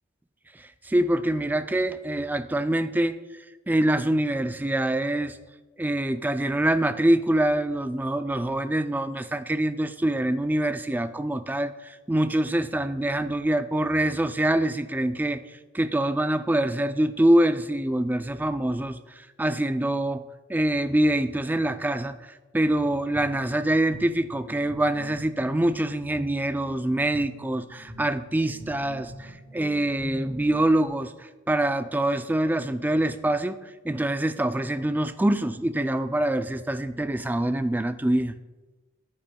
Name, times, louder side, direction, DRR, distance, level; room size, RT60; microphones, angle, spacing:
voice 1, 0.5-3.2 3.7-5.4 5.8-20.2 20.5-38.3, right 1 dB, 10° right, 10 dB, 0.3 m, -25 dB
Guitar, 23.1-30.9, equal, 30° right, 3.0 m, -44 dB
13.5 x 8.6 x 2.3 m, 1.2 s
head